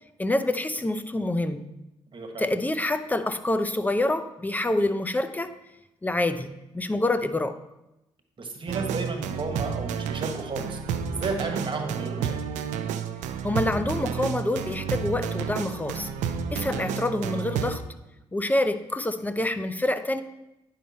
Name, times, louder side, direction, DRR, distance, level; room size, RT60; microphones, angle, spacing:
voice 1, 0.2-1.6 2.4-5.5 6.0-7.6 13.4-16.1 16.5-17.8 18.3-20.2, left 1 dB, 15° left, 10 dB, 0.7 m, -26 dB
voice 2, 2.1-2.5 8.4-10.8 11.1-12.4 17.6-17.7, right 3 dB, 45° right, 4 dB, 1.6 m, -33 dB
sound 1, 8.7-17.8, right 7 dB, 85° right, 0.6 m, -31 dB
9.8 x 5.9 x 4.3 m, 0.91 s
supercardioid pair, 60°, 12 cm